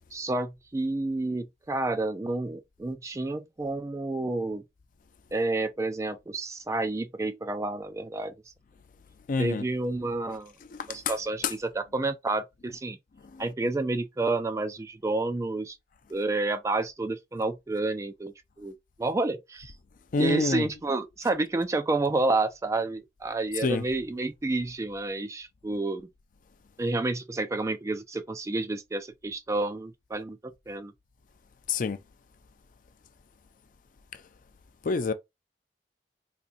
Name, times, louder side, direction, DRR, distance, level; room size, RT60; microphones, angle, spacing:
voice 1, 0.1-4.6 5.3-8.4 9.4-10.5 10.9-13.0 13.4-15.8 16.1-19.7 20.2-26.1 26.8-30.9, right 2 dB, 15° right, 0.3 m, -30 dB
voice 2, 9.3-9.6 10.7-11.0 13.3-13.4 20.1-20.7 23.6-23.8 31.7-32.0 34.8-35.1, left 3 dB, 50° left, 0.4 m, -27 dB
4.2 x 2.6 x 2.4 m
head